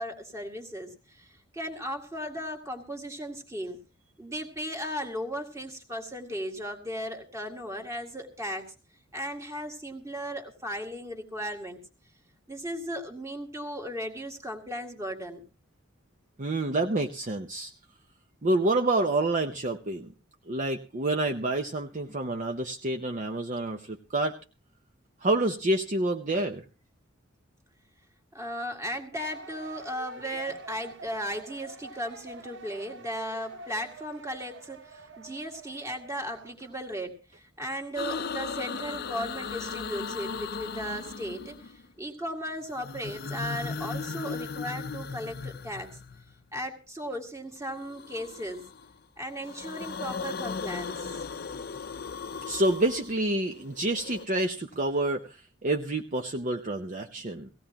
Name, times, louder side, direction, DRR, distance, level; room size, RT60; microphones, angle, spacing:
voice 1, 0.0-3.8 4.2-8.7 9.1-11.8 12.5-15.5 28.3-45.9 46.5-48.6 49.2-51.2, equal, 15° right, 4 dB, 2.0 m, -36 dB
voice 2, 16.4-17.7 18.4-20.1 20.5-24.4 25.2-26.6 52.4-57.5, right 2 dB, 40° right, 5 dB, 0.7 m, -28 dB
sound 1, 29.1-36.8, right 3 dB, 60° right, 1.0 m, -47 dB
sound 2, 38.0-41.9 42.6-46.4 47.7-48.9 49.3-54.3, left 5 dB, 50° left, 0.6 m, -37 dB
18.0 x 16.0 x 2.9 m, 0.33 s
head